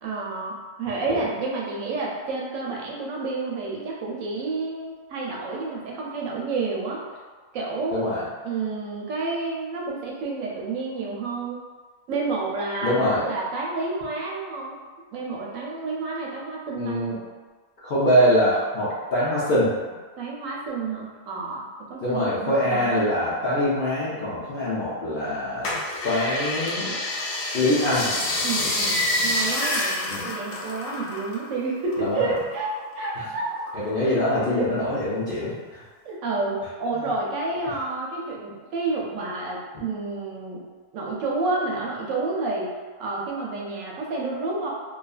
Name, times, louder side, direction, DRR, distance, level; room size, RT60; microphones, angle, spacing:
voice 1, 0.0-7.0 7.5-8.1 8.4-11.6 12.1-14.8 15.1-17.0 20.2-21.6 21.9-23.0 28.4-32.7 33.0-33.6 34.6-34.7 36.0-40.6 40.9-42.7 43.0-44.7, right 3 dB, 75° right, -3 dB, 0.9 m, -29 dB
voice 2, 12.8-13.2 16.7-17.2 17.8-19.7 22.0-25.7 26.0-26.9 27.5-28.1 30.1-30.2 32.0-32.3 33.2-33.3 33.7-35.5, equal, 60° left, -9 dB, 0.6 m, -23 dB
sound 1, 25.6-31.5 31.8-33.1 33.5-34.3 34.8-34.9, left 1 dB, 80° left, 1.0 m, -27 dB
2.6 x 2.4 x 2.3 m, 1.4 s
omnidirectional pair, 1.4 m